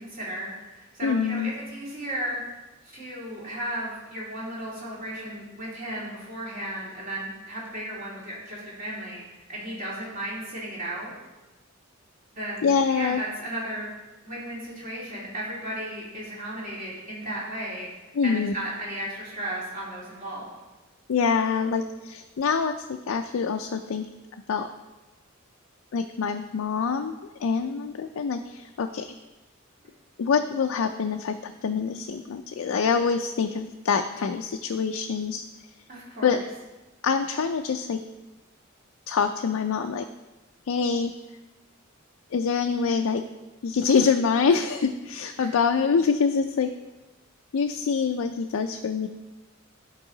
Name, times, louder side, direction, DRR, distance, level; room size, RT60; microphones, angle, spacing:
voice 1, 0.0-2.4 2.9-9.2 9.5-11.1 12.3-13.9 14.2-17.9 18.2-20.5 35.9-36.4 45.4-45.5, right 1 dB, 40° right, -6 dB, 2.7 m, -35 dB
voice 2, 1.0-1.5 12.6-13.2 18.1-18.6 21.1-24.1 24.5-24.7 25.9-29.1 30.2-35.4 36.2-36.4 37.0-38.0 39.1-40.1 40.7-41.1 42.3-43.2 43.6-46.7 47.5-49.1, left 5 dB, 90° left, 5 dB, 0.4 m, -25 dB
11.5 x 4.7 x 3.8 m, 1.1 s
head